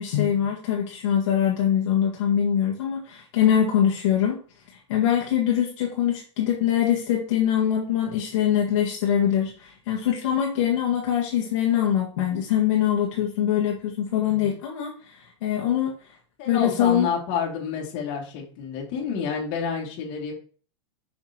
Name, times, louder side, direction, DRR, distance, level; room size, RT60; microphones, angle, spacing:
voice 1, 0.0-4.4 4.7-16.1 16.4-17.1, left 9 dB, 70° left, -2 dB, 1.7 m, -23 dB
voice 2, 16.4-20.3, left 6 dB, 50° left, -1 dB, 2.5 m, -29 dB
6.0 x 6.0 x 3.0 m, 0.40 s
supercardioid pair, 140°, 16 cm